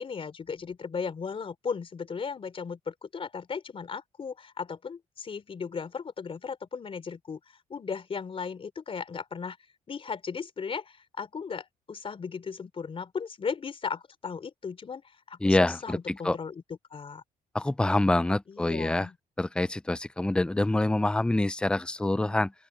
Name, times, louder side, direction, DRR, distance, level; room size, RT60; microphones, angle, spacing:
voice 1, 0.0-7.4 7.7-9.6 9.9-15.0 15.3-16.5 16.9-17.2 18.5-19.2, left 5 dB, 40° left, 3.9 m, -36 dB
voice 2, 15.4-16.4 17.5-19.1 19.4-22.5, left 2 dB, 5° left, 0.5 m, -26 dB
open air
cardioid pair, 105°, 15 cm